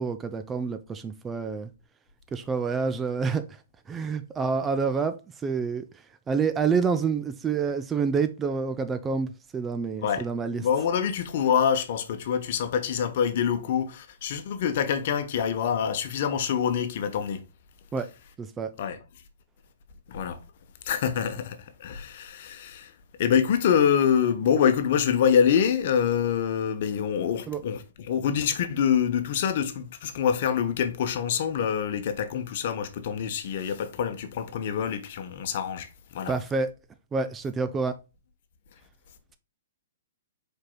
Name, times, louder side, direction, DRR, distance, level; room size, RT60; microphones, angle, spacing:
voice 1, 0.0-1.7 2.3-3.4 3.9-5.2 5.4-5.8 6.3-10.6 17.9-18.0 18.4-18.7 27.5-27.6 36.3-36.7 37.1-37.9, right 5 dB, 15° right, 0.5 m, -27 dB
voice 2, 10.6-17.4 18.8-19.0 20.1-20.4 20.8-22.9 23.2-36.3, left 8 dB, 55° left, 0.9 m, -26 dB
4.7 x 4.5 x 2.2 m
hypercardioid pair, 130°, 0 cm